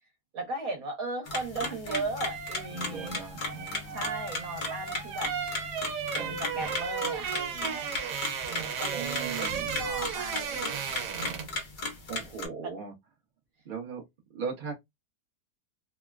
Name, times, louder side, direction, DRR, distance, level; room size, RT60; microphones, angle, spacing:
voice 1, 0.3-3.2 3.9-5.3 6.1-7.9 8.5-11.6 12.6-12.7, right 2 dB, 60° right, 1.2 m, -37 dB
sound 1, 1.3-12.5, left 2 dB, 60° left, 0.5 m, -36 dB
sound 2, 1.6-11.6 11.9-12.1, right 7 dB, 80° right, 1.3 m, -35 dB
voice 2, 2.7-4.0 6.1-6.6 8.9-9.9 12.1-12.9 13.6-14.0 14.3-14.7, right 5 dB, 45° right, 0.6 m, -38 dB
3.1 x 2.1 x 2.3 m
omnidirectional pair, 1.8 m